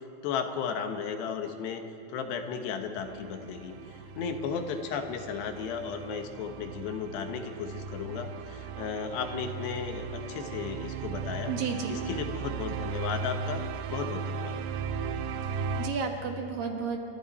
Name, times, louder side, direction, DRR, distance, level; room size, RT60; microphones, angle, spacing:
voice 1, 0.0-1.8 2.1-11.5 11.9-13.6 13.9-14.6, left 6 dB, 75° left, 5 dB, 3.3 m, -35 dB
sound 1, 3.0-15.9, right 5 dB, 80° right, 2.9 m, -37 dB
voice 2, 11.5-12.0 15.5-17.0, right 6 dB, 65° right, 3 dB, 2.6 m, -32 dB
28.0 x 24.5 x 4.3 m, 2.7 s
omnidirectional pair, 5.0 m